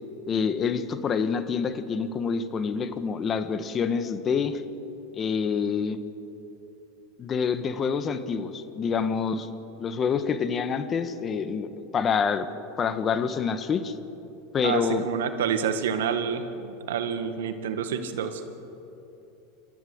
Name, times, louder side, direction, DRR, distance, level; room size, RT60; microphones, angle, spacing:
voice 1, 0.3-4.6 5.1-6.0 7.2-9.5 9.8-12.5 12.8-13.9 14.5-15.0, left 6 dB, 30° left, 11 dB, 1.4 m, -27 dB
voice 2, 14.6-18.4, right 7 dB, 85° right, 8 dB, 1.8 m, -28 dB
27.5 x 14.0 x 8.0 m, 2.9 s
supercardioid pair, 115°, 0 cm